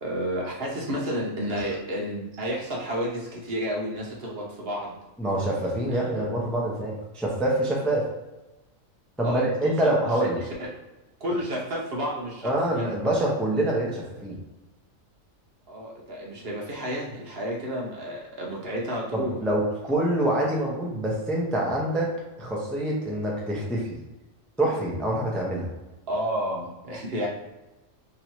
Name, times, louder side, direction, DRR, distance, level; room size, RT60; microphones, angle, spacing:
voice 1, 0.0-5.0 5.9-6.3 9.2-9.9 10.2-10.7 11.2-12.9 15.7-19.4 26.1-27.3, equal, 50° right, -3 dB, 1.0 m, -31 dB
voice 2, 5.2-8.1 9.2-10.4 12.4-14.4 19.1-23.9 24.6-25.7, right 1 dB, ahead, -3 dB, 0.5 m, -26 dB
3.0 x 2.7 x 4.5 m, 1.1 s
omnidirectional pair, 1.4 m